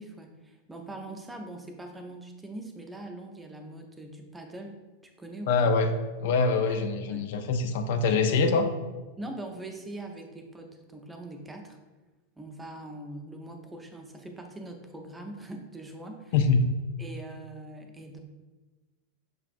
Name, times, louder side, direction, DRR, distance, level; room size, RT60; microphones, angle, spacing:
voice 1, 0.0-4.8 5.0-5.7 6.5-6.8 7.1-7.3 9.2-11.8 12.4-16.3 17.0-18.2, right 1 dB, 10° right, 3 dB, 0.5 m, -42 dB
voice 2, 5.5-5.9 6.2-8.7 16.3-16.6, left 4 dB, 55° left, 7 dB, 0.3 m, -24 dB
6.1 x 2.4 x 2.5 m, 1.2 s
figure-of-eight pair, 90°, 0 cm